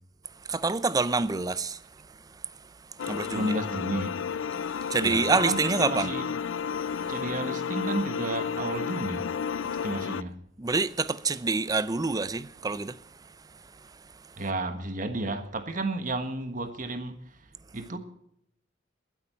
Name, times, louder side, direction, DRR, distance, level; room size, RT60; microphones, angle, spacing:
voice 1, 0.5-1.8 3.0-3.5 4.9-6.1 7.0-7.1 10.6-13.0 13.8-13.9, right 3 dB, 20° right, 0.5 m, -27 dB
sound 1, 3.0-10.2, left 7 dB, 85° left, 0.5 m, -32 dB
voice 2, 3.3-4.2 5.0-6.3 7.1-9.3 9.6-10.3 14.4-17.5 17.7-18.0, right 2 dB, 45° right, 1.5 m, -32 dB
20.5 x 8.3 x 4.4 m
head